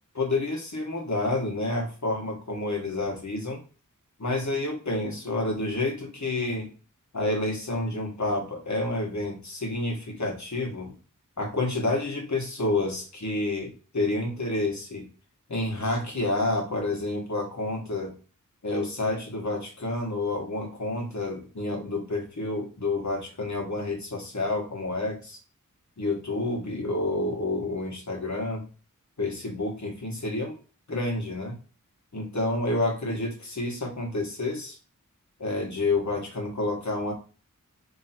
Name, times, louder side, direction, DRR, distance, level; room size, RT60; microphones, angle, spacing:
voice 1, 0.1-3.6 4.2-6.7 7.1-10.9 11.4-15.1 15.5-18.1 18.6-25.4 26.0-28.6 29.2-30.5 30.9-31.5 32.1-34.8 35.4-37.1, left 2 dB, 60° left, 0 dB, 1.4 m, -29 dB
3.0 x 2.7 x 4.3 m, 0.35 s
wide cardioid pair, 60°, 33 cm